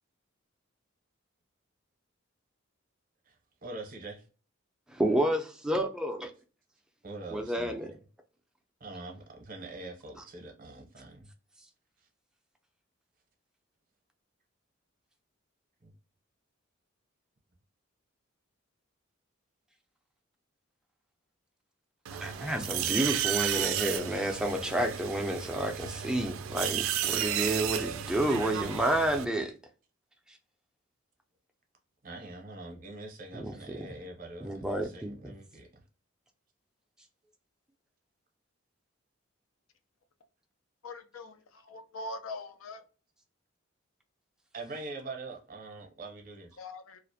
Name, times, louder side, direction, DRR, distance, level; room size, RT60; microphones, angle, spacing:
voice 1, 3.6-4.2 7.0-7.9 8.8-11.3 15.8-15.9 32.0-35.7 44.5-46.6, right 2 dB, 45° right, 0.7 m, -44 dB
voice 2, 4.9-6.3 7.3-7.9 22.2-29.5 33.3-33.9 34.4-35.2, right 1 dB, 5° right, 0.4 m, -30 dB
sound 1, 22.1-29.3, right 10 dB, 85° right, 0.3 m, -33 dB
voice 3, 40.8-42.8 46.6-47.0, left 2 dB, 85° left, 0.4 m, -42 dB
2.4 x 2.0 x 2.6 m
head